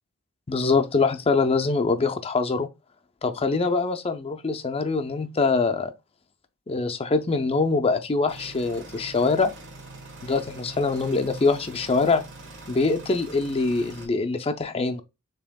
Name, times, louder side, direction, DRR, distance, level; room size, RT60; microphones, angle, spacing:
voice 1, 0.5-2.7 3.2-5.9 6.7-9.5 10.2-12.2 12.7-15.0, left 3 dB, 25° left, 0.5 m, -24 dB
sound 1, 8.3-14.1, right 2 dB, 55° right, 1.3 m, -43 dB
7.0 x 2.9 x 2.2 m
head